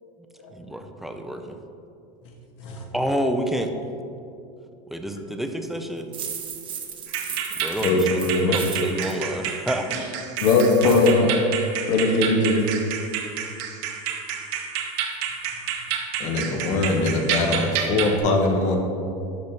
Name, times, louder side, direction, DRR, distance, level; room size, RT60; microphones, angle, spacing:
voice 1, 0.5-1.6 2.9-3.7 4.9-6.1 7.6-10.1, equal, ahead, 5 dB, 0.5 m, -29 dB
sound 1, 6.1-9.1 10.3-11.1, right 8 dB, 30° right, 0.8 m, -35 dB
sound 2, 7.1-18.2, right 7 dB, 60° right, 0.9 m, -30 dB
voice 2, 7.8-8.6 10.4-11.4 11.9-12.6, left 3 dB, 75° left, 1 dB, 1.4 m, -19 dB
voice 3, 16.2-18.8, left 2 dB, 45° left, 2 dB, 1.2 m, -22 dB
11.5 x 5.2 x 2.9 m, 2.7 s
supercardioid pair, 135°, 16 cm